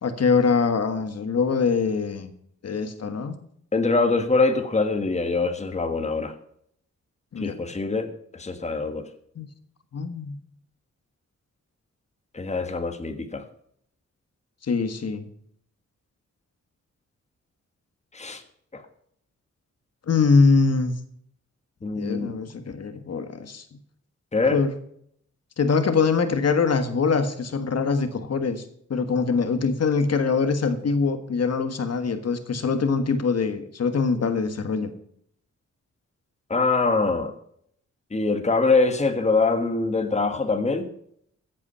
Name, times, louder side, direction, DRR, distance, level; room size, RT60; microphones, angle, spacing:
voice 1, 0.0-2.3 2.6-3.4 7.3-7.5 9.4-9.5 9.9-10.4 14.7-15.3 20.1-20.9 21.9-23.6 24.5-24.7 25.6-28.6 28.9-34.9, left 4 dB, 55° left, 8 dB, 1.6 m, -23 dB
voice 2, 3.7-6.3 7.4-9.1 12.3-13.4 18.1-18.4 18.7-18.8 21.8-22.3 24.3-24.6 36.5-37.3 38.1-40.9, left 3 dB, 20° left, 7 dB, 1.5 m, -24 dB
15.0 x 8.6 x 5.6 m, 0.67 s
wide cardioid pair, 135°, 30 cm